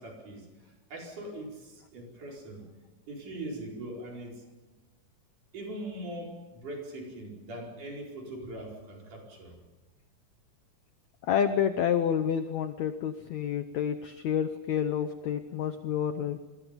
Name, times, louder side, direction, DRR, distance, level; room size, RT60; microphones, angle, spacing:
voice 1, 0.0-2.7 3.1-4.4 5.5-9.5, right 1 dB, 55° right, 0 dB, 6.2 m, -41 dB
voice 2, 11.3-16.4, left 8 dB, 75° left, 9 dB, 1.7 m, -29 dB
28.5 x 22.5 x 5.3 m, 1.2 s
omnidirectional pair, 4.4 m